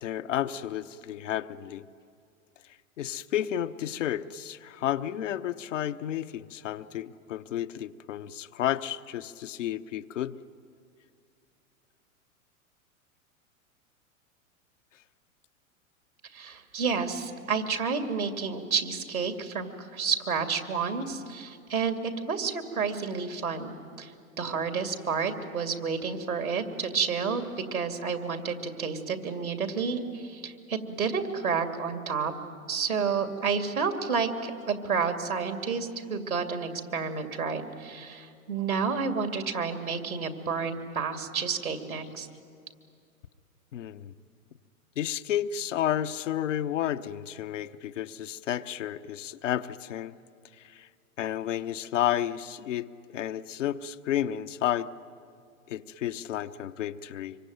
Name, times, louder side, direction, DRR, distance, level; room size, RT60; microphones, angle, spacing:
voice 1, 0.0-1.8 3.0-10.3 43.7-44.1 45.0-50.1 50.6-50.9 51.2-54.9 55.7-57.4, left 11 dB, 60° left, 10 dB, 0.9 m, -31 dB
voice 2, 16.3-24.1 24.4-27.4 27.7-32.3 32.7-42.3, right 5 dB, 80° right, 6 dB, 2.6 m, -30 dB
26.0 x 24.0 x 9.3 m, 2.3 s
figure-of-eight pair, 95°, 42 cm